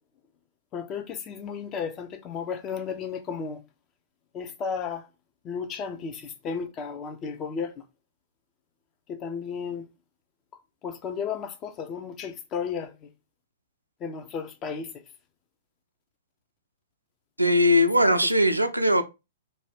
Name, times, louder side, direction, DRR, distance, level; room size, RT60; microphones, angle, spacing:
voice 1, 0.7-3.6 4.3-5.1 5.4-7.7 9.1-9.9 10.8-13.1 14.0-14.9, left 6 dB, 25° left, 0.5 m, -33 dB
voice 2, 17.4-19.0, left 1 dB, 85° right, 0.4 m, -20 dB
2.6 x 2.3 x 3.2 m
figure-of-eight pair, 110°, 0 cm